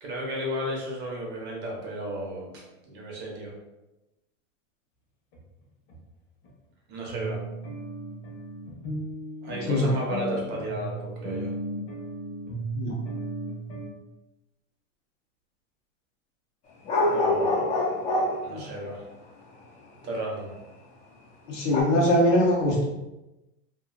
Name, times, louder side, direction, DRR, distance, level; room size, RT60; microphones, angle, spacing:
voice 1, 0.0-3.5 6.9-7.4 9.4-11.5 17.1-17.7 18.4-19.0 20.0-20.5, right 1 dB, 30° right, -2 dB, 0.7 m, -33 dB
sound 1, 5.3-5.4 5.9-6.0 6.4-6.5 7.1-13.9, right 1 dB, 60° left, 1.1 m, -36 dB
sound 2, 16.9-18.6 21.7-21.8, left 2 dB, 20° left, 0.4 m, -25 dB
voice 2, 21.5-22.8, left 1 dB, 90° left, -4 dB, 1.1 m, -22 dB
2.8 x 2.6 x 2.4 m, 1.0 s
supercardioid pair, 140°, 35 cm